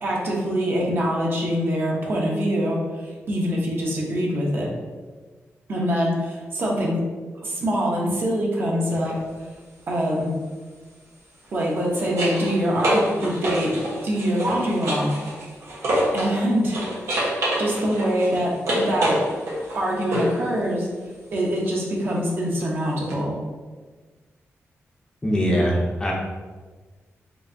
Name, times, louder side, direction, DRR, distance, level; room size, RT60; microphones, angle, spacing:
voice 1, 0.0-4.7 5.7-7.0 7.3-9.2 9.9-10.3 11.5-13.7 14.0-15.1 16.1-16.8 17.6-19.2 19.7-20.9 21.3-23.4, equal, 45° right, -3 dB, 0.8 m, -24 dB
sound 1, 8.9-9.1 11.4-16.4 16.7-20.4 23.1-23.2, equal, 85° right, 1.1 m, -27 dB
voice 2, 25.2-26.1, equal, 15° left, -3 dB, 0.5 m, -21 dB
4.5 x 2.6 x 2.7 m, 1.4 s
wide cardioid pair, 165°, 5 cm